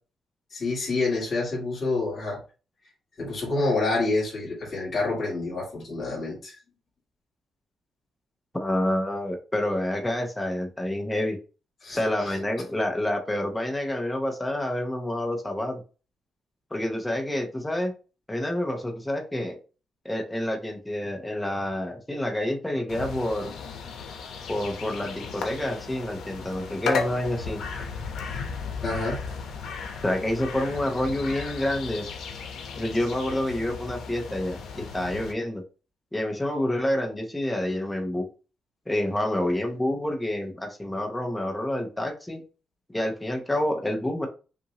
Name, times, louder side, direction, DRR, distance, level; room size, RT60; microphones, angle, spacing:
voice 1, 0.5-2.4 3.2-6.5 11.8-12.3 28.8-29.2, left 3 dB, 30° left, -6 dB, 2.2 m, -28 dB
voice 2, 8.5-11.4 11.9-15.8 16.7-17.9 18.3-19.6 20.0-23.5 24.5-27.6 30.0-32.1 32.8-35.6 36.1-38.2 38.9-42.4 42.9-44.3, left 1 dB, 5° left, 1 dB, 0.8 m, -28 dB
sound 1, 22.9-35.3, left 5 dB, 85° left, 0.9 m, -35 dB
5.8 x 2.6 x 2.9 m, 0.34 s
wide cardioid pair, 170°, 0 cm